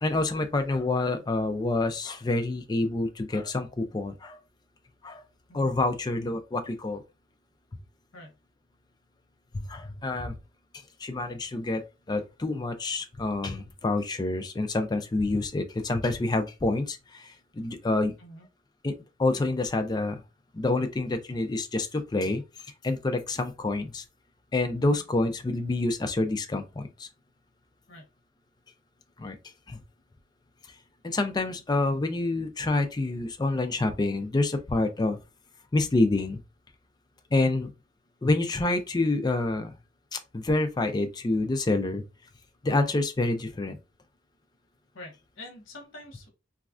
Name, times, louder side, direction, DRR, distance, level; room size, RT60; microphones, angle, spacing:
voice 1, 0.0-4.4 5.0-5.2 5.5-7.0 9.5-10.4 11.0-18.1 18.8-20.2 20.5-22.4 22.8-24.0 24.5-27.1 29.2-29.4 29.7-29.8 31.0-35.2 35.7-36.4 37.3-37.7 38.2-39.7 40.1-42.0 42.6-43.8, left 2 dB, 20° left, 0.3 m, -27 dB
voice 2, 44.9-46.3, left 1 dB, 70° left, 1.0 m, -46 dB
3.1 x 2.3 x 2.4 m
head